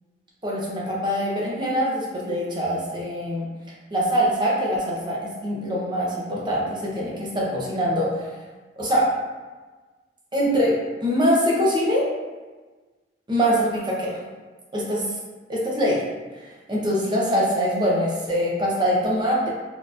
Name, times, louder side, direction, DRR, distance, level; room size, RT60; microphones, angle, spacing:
voice 1, 0.4-3.5 3.9-8.4 8.8-9.1 10.3-12.1 13.3-14.2 14.7-15.0 15.5-16.0 16.4-19.5, equal, 25° right, -5 dB, 0.8 m, -23 dB
4.3 x 2.9 x 2.5 m, 1.3 s
head